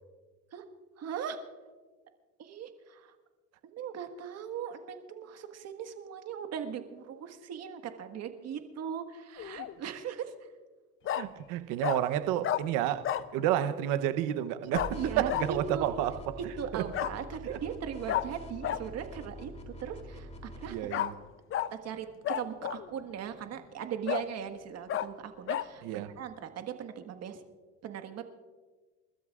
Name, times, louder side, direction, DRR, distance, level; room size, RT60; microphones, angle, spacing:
voice 1, 1.0-1.4 2.4-3.1 3.6-10.3 14.9-15.9 16.6-21.0 21.8-22.1 22.3-27.4 27.8-28.2, right 8 dB, 50° right, 1.6 m, -39 dB
Bark, 9.4-9.7 11.1-11.3 11.8-12.0 12.4-12.6 13.0-13.3 14.7-14.9 15.3-15.5 16.9-17.1 18.1-18.2 18.6-18.8 20.9-21.1 21.5-21.7 22.2-22.9 23.4-23.5 24.1-24.3 24.9-25.1 25.5-25.7, left 11 dB, 40° left, 0.6 m, -31 dB
voice 2, 11.2-16.9 17.4-17.6 20.6-21.1 25.8-26.1, right 11 dB, 80° right, 0.9 m, -31 dB
sound 1, 14.7-20.7, equal, 20° left, 3.1 m, -44 dB
29.0 x 13.0 x 2.5 m
cardioid pair, 110°, 32 cm